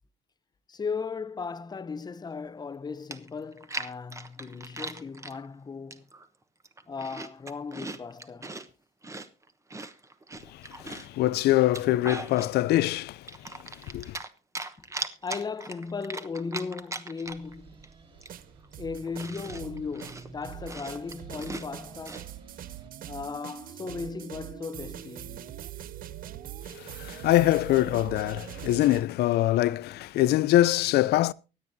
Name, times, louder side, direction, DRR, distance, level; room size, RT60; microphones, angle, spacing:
voice 1, 0.7-6.1 6.9-8.6 15.2-17.8 18.8-22.3 23.1-25.5, left 5 dB, 25° left, 0.8 m, -37 dB
Chewing mastication, 2.7-2.8 3.1-5.4 5.9-6.3 6.6-8.7 9.0-11.2 11.6-12.5 12.9-14.3 14.5-17.5 17.8-17.9 18.2-22.3, right 3 dB, 15° right, 1.1 m, -39 dB
voice 2, 10.5-14.2 26.7-31.3, left 15 dB, 75° left, 0.5 m, -24 dB
sound 1, 17.2-22.9, right 4 dB, 35° right, 4.1 m, -52 dB
sound 2, 18.1-29.0, right 12 dB, 55° right, 0.6 m, -43 dB
24.0 x 9.0 x 2.7 m
cardioid pair, 110°, 17 cm